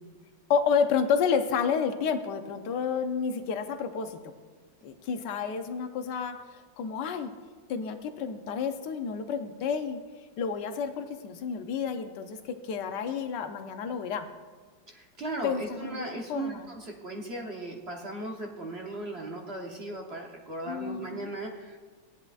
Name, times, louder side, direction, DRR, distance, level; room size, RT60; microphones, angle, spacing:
voice 1, 0.5-4.2 4.8-6.4 6.8-7.3 7.7-10.0 10.4-14.3 15.4-16.7 20.7-21.3, left 6 dB, 70° left, 7 dB, 1.3 m, -30 dB
voice 2, 14.9-21.8, right 2 dB, 45° right, 1 dB, 0.9 m, -37 dB
16.5 x 10.0 x 2.4 m, 1.5 s
omnidirectional pair, 2.1 m